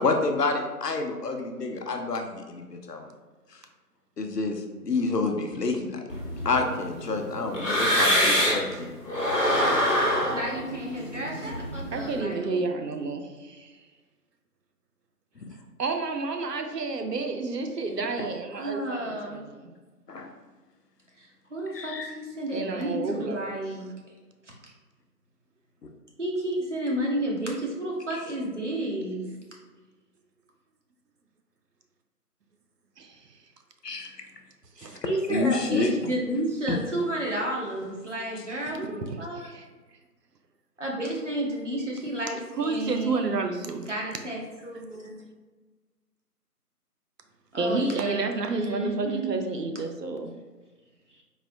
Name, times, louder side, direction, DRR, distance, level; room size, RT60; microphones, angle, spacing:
voice 1, 0.0-3.1 3.5-3.6 4.2-6.0 6.4-9.2 9.5-9.7 15.4-15.5 18.2-18.3 20.1-20.3 21.7-22.2 28.1-28.2 33.8-34.1 35.3-36.1 36.7-36.8 38.3-38.4, left 3 dB, 80° left, 4 dB, 0.8 m, -29 dB
sound 1, 6.1-8.7 9.1-12.1, equal, 50° left, 1.4 m, -25 dB
voice 2, 10.3-12.7 18.5-19.4 21.2-23.9 26.2-29.3 35.0-39.5 40.8-43.4 43.9-45.2 47.5-49.4, right 1 dB, 50° right, -2 dB, 0.9 m, -31 dB
voice 3, 11.9-13.7 15.8-19.7 22.5-23.4 33.0-33.3 34.8-35.0 38.6-39.7 42.6-43.9 47.6-50.3, right 3 dB, 85° right, 5 dB, 0.7 m, -30 dB
4.0 x 2.9 x 2.6 m, 1.3 s
figure-of-eight pair, 170°, 47 cm